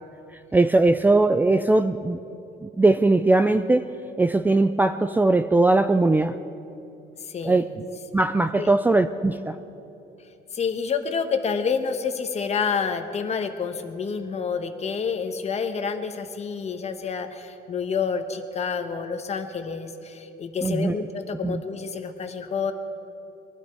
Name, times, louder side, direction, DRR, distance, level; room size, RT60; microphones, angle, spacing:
voice 1, 0.5-2.2 2.6-3.8 4.2-6.3 7.4-7.7 8.1-9.6 20.6-20.9 21.4-21.6, right 2 dB, 10° right, 9 dB, 0.4 m, -20 dB
voice 2, 7.2-7.6 8.6-8.7 10.5-22.7, left 5 dB, 40° left, 7 dB, 1.2 m, -28 dB
22.0 x 11.5 x 4.7 m, 2.8 s
cardioid pair, 110°, 17 cm